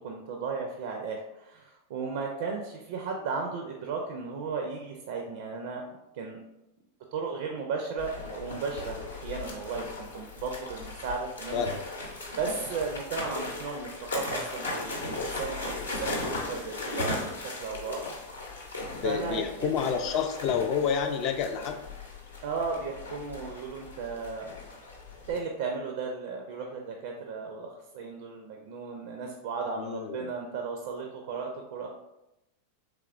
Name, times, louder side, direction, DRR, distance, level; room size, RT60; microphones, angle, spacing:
voice 1, 0.0-5.8 6.1-6.4 7.1-11.6 12.3-18.1 19.0-19.7 22.4-24.5 25.3-31.9, right 4 dB, 55° right, 2 dB, 0.4 m, -35 dB
sound 1, 8.0-25.4, left 2 dB, 75° left, 0.7 m, -37 dB
voice 2, 18.9-21.8 29.8-30.3, left 7 dB, 40° left, 5 dB, 0.3 m, -29 dB
3.5 x 3.1 x 2.4 m, 0.91 s
figure-of-eight pair, 90°, 0 cm